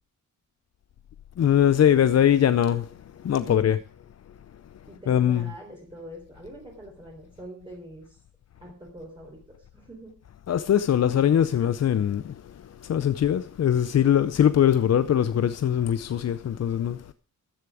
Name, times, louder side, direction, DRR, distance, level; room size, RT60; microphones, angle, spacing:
voice 1, 1.4-2.8 3.2-3.8 5.1-5.5 10.5-12.2 12.9-17.0, left 10 dB, 55° left, 0.6 m, -21 dB
voice 2, 3.3-3.7 4.9-8.2 8.6-10.2, right 1 dB, 15° right, 3.7 m, -44 dB
14.0 x 10.5 x 4.9 m
wide cardioid pair, 150°, 32 cm